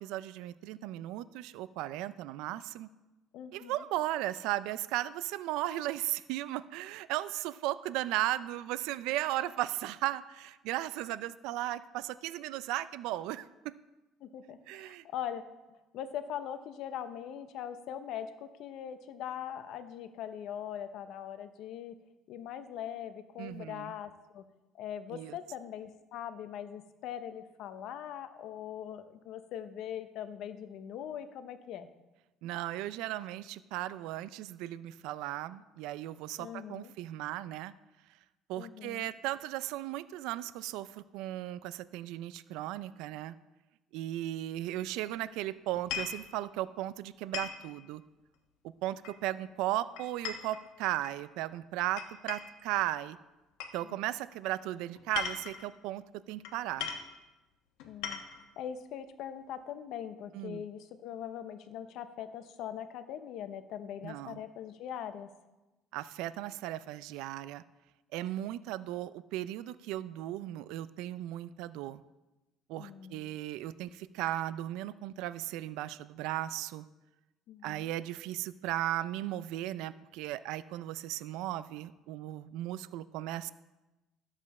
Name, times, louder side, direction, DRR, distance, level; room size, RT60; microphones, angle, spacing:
voice 1, 0.0-2.9 3.5-13.8 14.7-15.1 23.4-23.9 25.1-25.4 32.4-37.7 38.5-43.4 43.9-48.0 48.8-53.2 53.7-56.9 60.3-60.6 64.0-64.4 65.9-67.6 68.1-72.0 72.7-76.8 77.6-83.5, right 14 dB, 70° right, 15 dB, 0.3 m, -36 dB
voice 2, 3.3-3.8 14.2-15.4 15.9-21.9 22.3-24.4 24.7-31.9 36.4-36.9 38.6-39.1 53.8-54.0 57.8-58.2 58.6-65.3 72.8-73.3 77.5-77.9, left 9 dB, 50° left, 10 dB, 0.7 m, -41 dB
sound 1, 45.7-46.2 47.3-47.6 49.0-49.4 50.0-51.2 52.0-52.6 53.6-53.8 54.9-55.7 56.4-56.5 56.8-57.1 57.8-58.4, left 7 dB, 85° left, 1.2 m, -38 dB
13.0 x 7.4 x 4.2 m, 1.1 s
cardioid pair, 175°, 0 cm